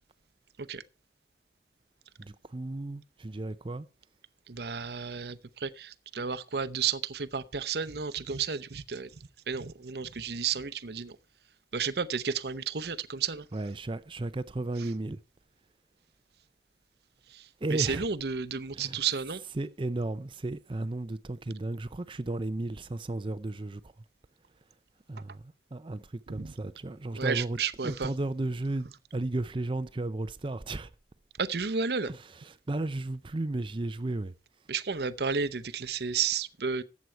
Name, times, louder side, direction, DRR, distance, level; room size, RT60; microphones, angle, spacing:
voice 1, 2.2-3.9 13.5-15.2 17.6-18.1 18.7-19.0 19.5-24.0 25.1-27.6 27.8-30.9 32.1-34.3, right 2 dB, 30° right, 0.5 m, -34 dB
voice 2, 4.5-9.1 9.5-11.2 11.7-13.4 17.3-17.4 17.7-19.4 26.3-26.5 27.2-28.1 31.4-32.1 34.7-36.8, right 6 dB, 65° right, 0.7 m, -32 dB
14.0 x 8.4 x 4.5 m
head